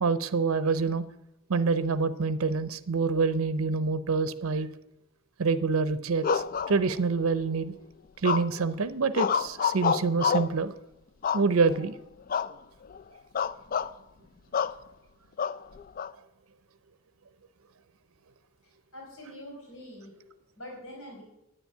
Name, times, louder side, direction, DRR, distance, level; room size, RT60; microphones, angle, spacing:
voice 1, 0.0-1.0 1.5-4.7 5.4-7.7 8.2-10.7 11.3-11.9, right 4 dB, 80° right, 14 dB, 0.6 m, -26 dB
sound 1, 6.2-7.3 8.2-8.7 9.1-10.6 11.2-11.8 12.3-12.6 12.9-13.0 13.4-13.9 14.5-14.8 15.4-16.1, left 6 dB, 40° left, 0.3 m, -28 dB
voice 2, 18.9-20.1 20.6-21.2, left 1 dB, 85° left, -1 dB, 4.1 m, -44 dB
9.8 x 7.2 x 9.2 m, 0.87 s
head